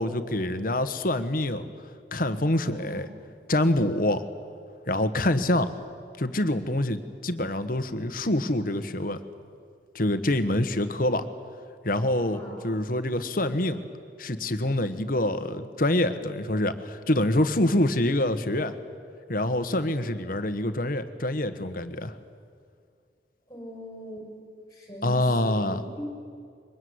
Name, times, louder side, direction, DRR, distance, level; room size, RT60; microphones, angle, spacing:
voice 1, 0.0-1.7 2.1-3.1 3.5-4.2 4.9-5.7 6.2-9.2 9.9-11.3 11.8-13.8 14.2-18.7 19.3-22.1 25.0-25.8, left 1 dB, 50° left, 11 dB, 1.4 m, -26 dB
voice 2, 2.6-3.0 12.3-12.7 23.5-24.3 24.7-26.0, equal, 20° left, 0 dB, 6.7 m, -41 dB
23.5 x 20.0 x 9.7 m, 2.2 s
head